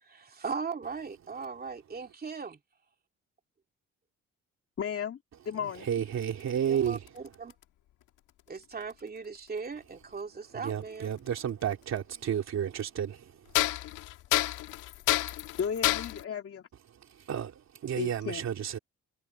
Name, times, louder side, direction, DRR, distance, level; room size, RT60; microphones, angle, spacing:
voice 1, 0.0-2.6 6.7-7.5 8.5-11.1, right 5 dB, 30° right, 2.7 m, -38 dB
voice 2, 4.8-5.2 5.4-5.9 15.6-16.7 18.0-18.4, left 7 dB, 50° left, 2.4 m, -34 dB
voice 3, 5.7-7.1 10.5-13.7 16.9-18.8, right 9 dB, 60° right, 3.1 m, -32 dB
sound 1, 6.2-7.6 8.9-9.0 11.1-11.2 12.0-12.1 13.5-16.2, left 14 dB, 90° left, 1.7 m, -29 dB
cardioid pair, 90°, 30 cm